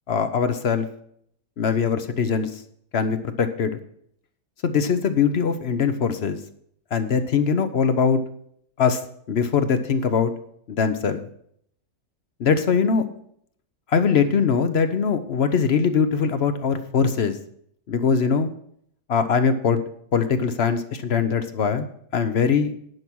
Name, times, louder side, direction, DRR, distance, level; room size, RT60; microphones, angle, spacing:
voice 1, 0.1-0.9 1.6-2.6 2.9-3.8 4.6-6.4 6.9-8.2 8.8-9.0 9.3-10.3 10.7-11.2 12.4-13.0 13.9-17.3 17.9-18.5 19.1-19.8 20.1-21.9 22.1-22.7, left 6 dB, 55° left, 10 dB, 0.8 m, -21 dB
10.5 x 5.9 x 6.1 m, 0.67 s
omnidirectional pair, 1.7 m